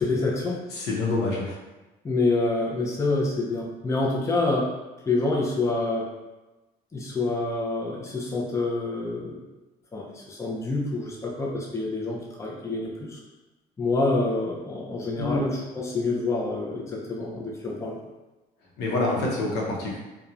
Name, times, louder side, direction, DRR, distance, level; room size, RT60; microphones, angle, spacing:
voice 1, 0.0-0.6 2.0-4.7 5.1-6.1 6.9-9.4 9.9-13.2 13.8-17.9, left 2 dB, 15° left, -3 dB, 0.5 m, -27 dB
voice 2, 0.7-1.5 15.2-15.4 18.8-20.0, left 2 dB, 85° left, -3 dB, 0.8 m, -26 dB
2.9 x 2.2 x 2.4 m, 1.1 s
cardioid pair, 110°, 17 cm